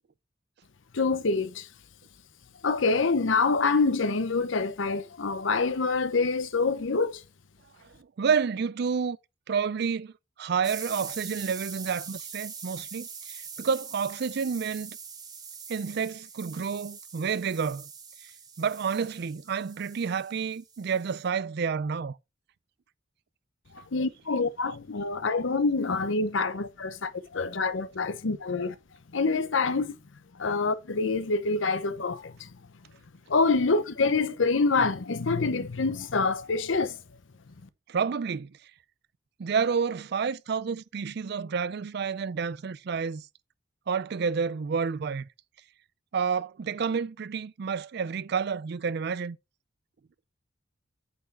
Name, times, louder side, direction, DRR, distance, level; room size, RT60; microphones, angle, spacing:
voice 1, 0.9-1.7 2.6-7.2 23.7-28.8 29.1-30.0 30.4-32.5 33.3-37.0, left 4 dB, 80° left, 0.8 m, -26 dB
voice 2, 8.2-9.2 9.5-10.1 10.4-15.0 15.7-17.9 18.6-22.2 37.9-38.5 39.4-43.2 43.9-45.3 46.1-49.4, right 6 dB, 55° right, 0.4 m, -29 dB
sound 1, 10.6-21.3, right 6 dB, 20° right, 1.0 m, -43 dB
8.5 x 4.7 x 4.4 m
head